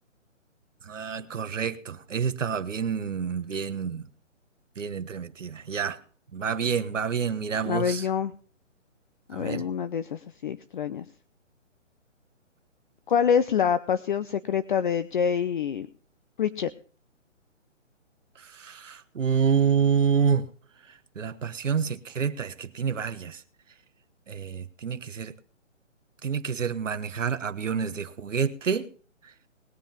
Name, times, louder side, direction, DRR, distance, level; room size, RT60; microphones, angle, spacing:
voice 1, 0.8-4.1 4.8-6.0 6.3-8.1 9.3-9.7 18.4-20.5 20.9-23.4 24.3-25.3 26.2-28.9 29.2-29.3, right 6 dB, 75° right, 1.4 m, -28 dB
voice 2, 7.6-8.3 9.3-11.0 13.1-15.9 16.4-16.7, left 7 dB, 40° left, 0.7 m, -26 dB
20.0 x 7.3 x 5.3 m
hypercardioid pair, 150°, 38 cm